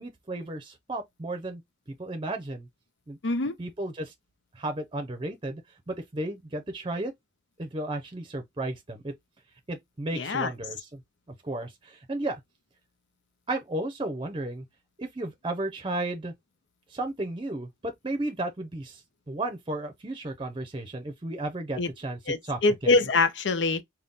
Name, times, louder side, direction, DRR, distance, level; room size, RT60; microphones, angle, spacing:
voice 1, 0.0-1.6 2.0-2.7 3.1-3.2 3.6-4.1 4.5-5.6 5.9-7.1 7.6-9.1 9.7-11.0 11.4-12.4 13.5-14.6 15.0-16.3 16.9-19.0 19.3-23.0, right 2 dB, 25° right, 0.6 m, -33 dB
voice 2, 3.2-3.5 10.1-10.5 21.8-21.9 22.3-23.8, left 3 dB, 75° left, 0.6 m, -24 dB
3.6 x 2.2 x 3.9 m
head